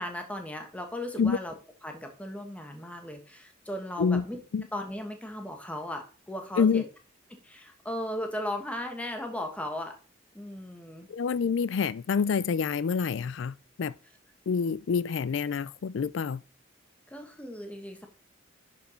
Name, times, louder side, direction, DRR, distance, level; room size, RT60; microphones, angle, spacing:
voice 1, 0.0-1.5 1.8-4.4 4.7-6.8 7.3-9.9 10.3-11.1 17.1-18.1, left 1 dB, 5° left, 1.3 m, -37 dB
voice 2, 11.1-13.9 14.5-16.4, left 6 dB, 75° left, 0.4 m, -27 dB
10.5 x 4.4 x 4.4 m
head